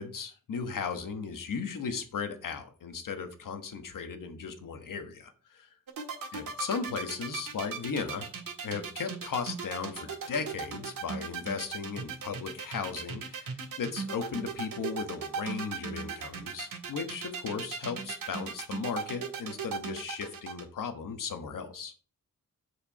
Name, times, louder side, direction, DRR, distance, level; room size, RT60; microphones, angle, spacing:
voice 1, 0.0-5.7 6.3-8.3 8.6-21.9, left 5 dB, 70° left, 7 dB, 1.3 m, -36 dB
sound 1, 5.9-20.6, right 5 dB, 75° right, 1.9 m, -37 dB
7.4 x 5.0 x 4.8 m, 0.41 s
cardioid pair, 70°, 33 cm